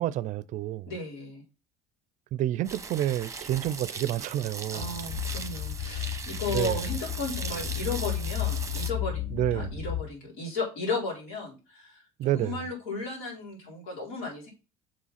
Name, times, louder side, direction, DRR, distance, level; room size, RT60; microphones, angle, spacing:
voice 1, 0.0-0.9 2.3-4.9 6.5-6.8 9.3-9.7 12.2-12.6, right 13 dB, 60° right, 0.4 m, -29 dB
voice 2, 0.9-1.4 4.7-9.2 9.5-14.5, left 3 dB, 80° left, 4.1 m, -35 dB
sound 1, 2.6-8.9, right 5 dB, 20° right, 0.9 m, -39 dB
sound 2, 4.8-10.0, left 11 dB, 45° left, 1.0 m, -33 dB
6.6 x 3.7 x 5.7 m
supercardioid pair, 80°, 15 cm